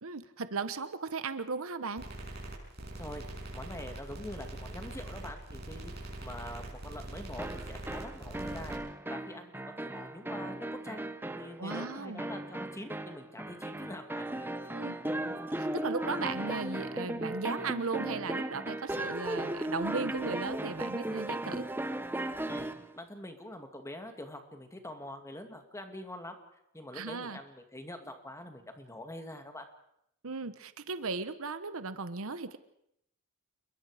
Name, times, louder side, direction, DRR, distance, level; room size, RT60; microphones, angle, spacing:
voice 1, 0.0-2.0 11.6-12.2 14.7-15.0 15.5-21.6 26.9-27.4 30.2-32.6, right 4 dB, 65° right, 12 dB, 1.1 m, -36 dB
sound 1, 2.0-8.8, right 1 dB, 50° right, 6.6 m, -43 dB
voice 2, 3.5-8.8 9.1-14.7 15.0-15.4 22.5-26.4 26.7-29.7, left 1 dB, 15° left, 5 dB, 2.3 m, -45 dB
sound 2, 7.4-22.9, right 1 dB, 10° right, 0.9 m, -36 dB
29.5 x 21.5 x 5.0 m, 0.76 s
head